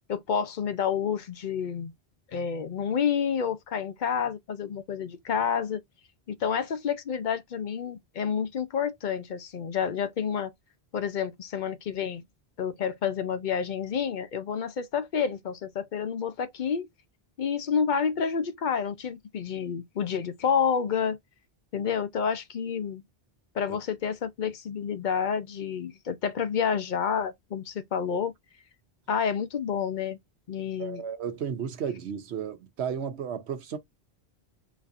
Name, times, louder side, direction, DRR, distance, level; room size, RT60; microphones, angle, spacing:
voice 1, 0.1-1.9 2.3-5.8 6.3-10.5 10.9-12.2 12.6-16.9 17.4-21.2 21.7-23.0 23.5-28.3 29.1-30.2 30.5-31.0, left 7 dB, 55° left, 0.6 m, -29 dB
voice 2, 30.8-33.8, right 7 dB, 90° right, 1.0 m, -33 dB
4.0 x 2.8 x 2.5 m
omnidirectional pair, 1.1 m